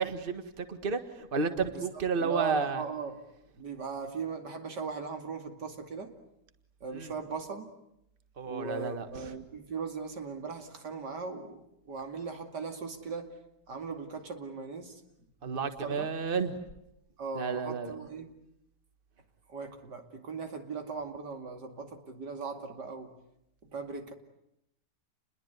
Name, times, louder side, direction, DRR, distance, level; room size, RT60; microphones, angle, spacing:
voice 1, 0.0-2.8 6.9-7.1 8.4-9.3 15.4-16.6 17.4-17.9, right 5 dB, 35° right, 9 dB, 1.8 m, -32 dB
voice 2, 2.2-3.2 3.6-6.1 6.8-7.7 8.4-13.3 13.7-15.0 15.5-16.1 17.2-18.3 19.5-23.1 23.7-24.1, right 5 dB, 85° right, 5 dB, 3.1 m, -38 dB
29.5 x 22.0 x 9.4 m, 0.82 s
omnidirectional pair, 1.8 m